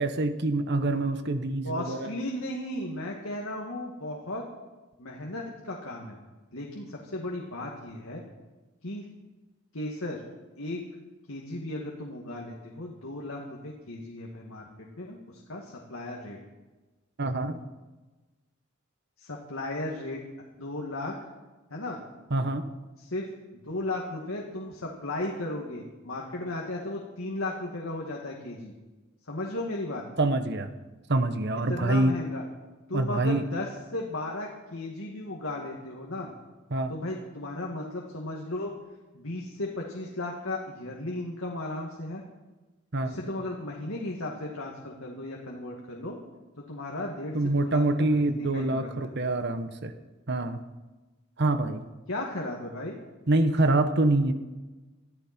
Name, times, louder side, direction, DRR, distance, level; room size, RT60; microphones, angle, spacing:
voice 1, 0.0-2.1 17.2-17.6 22.3-22.7 30.2-30.7 31.1-32.2 32.9-33.5 36.7-36.9 42.9-43.2 47.3-49.9 50.3-50.6 51.4-51.8 53.3-54.3, right 2 dB, 55° right, 9 dB, 1.2 m, -25 dB
voice 2, 1.6-4.4 5.0-6.2 6.5-8.2 8.8-9.0 9.7-10.2 10.6-10.8 11.3-14.7 15.0-16.4 19.2-20.2 20.6-21.1 21.7-22.0 23.0-23.3 23.5-28.7 29.3-30.0 31.7-32.4 32.9-36.3 36.9-38.7 39.1-42.2 43.0-46.2 46.6-49.1 52.1-52.9, left 1 dB, 85° left, -1 dB, 2.2 m, -35 dB
22.0 x 14.0 x 4.5 m, 1.2 s
head